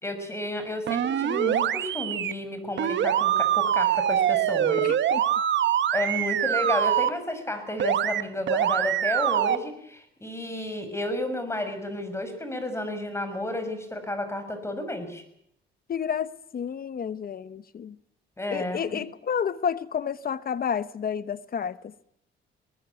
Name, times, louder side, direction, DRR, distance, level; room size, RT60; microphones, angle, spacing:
voice 1, 0.0-4.9 5.9-15.2 18.4-19.0, left 1 dB, 15° left, 6.3 m, -32 dB
sound 1, 0.9-2.3 2.8-7.1 7.8-8.2 8.5-9.6, right 10 dB, 65° right, 1.4 m, -24 dB
voice 2, 4.8-5.2 15.9-18.0 18.5-21.9, left 7 dB, 50° left, 1.0 m, -30 dB
21.0 x 19.5 x 8.4 m
cardioid pair, 90°, 20 cm